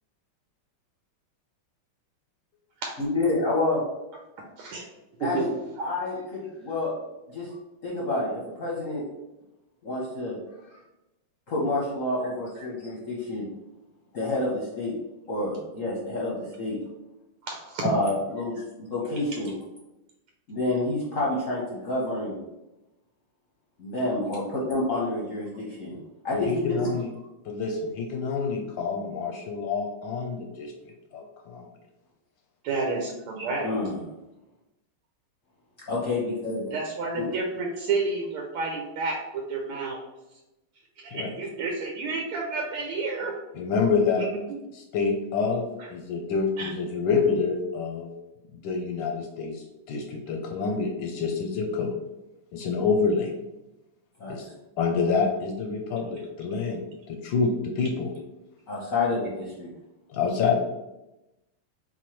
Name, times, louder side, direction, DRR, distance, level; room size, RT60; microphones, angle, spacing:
voice 1, 3.0-3.8 5.2-5.4 5.8-6.9 7.3-7.5 7.8-9.0 9.8-10.4 11.5-13.5 14.1-15.0 15.3-16.8 17.8-19.5 20.5-22.4 23.8-26.0 26.2-26.9 33.6-34.0 35.9-36.6 37.1-37.3 54.2-54.4 58.7-59.7, left 2 dB, 55° left, -4 dB, 0.9 m, -28 dB
voice 2, 5.2-5.5 5.8-5.9 12.6-12.7 17.4-17.8 32.6-33.7 36.7-40.0 41.0-43.3 44.2-44.6 46.6-46.7, right 3 dB, 85° right, 0 dB, 1.6 m, -30 dB
voice 3, 26.3-27.1 27.4-30.7 31.1-31.6 41.1-41.3 43.5-44.2 44.7-45.6 45.9-48.1 48.6-51.9 52.5-53.3 54.3-54.5 54.8-56.8 57.1-58.1 60.1-60.5, left 5 dB, 75° left, 2 dB, 1.2 m, -27 dB
4.3 x 3.9 x 3.1 m, 0.97 s
omnidirectional pair, 2.4 m